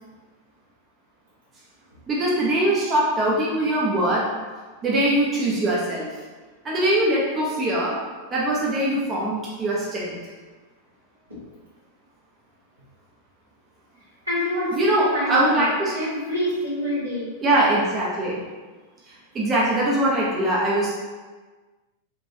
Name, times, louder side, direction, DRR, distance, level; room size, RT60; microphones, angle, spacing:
voice 1, 2.1-4.3 4.8-6.1 6.6-8.0 8.3-10.2 14.7-15.9 17.4-18.4 19.3-20.9, right 1 dB, 25° right, -5 dB, 0.7 m, -22 dB
voice 2, 14.2-15.7 15.9-17.3, left 1 dB, 85° right, -10 dB, 1.5 m, -26 dB
3.7 x 2.5 x 2.7 m, 1.3 s
figure-of-eight pair, 90°, 0 cm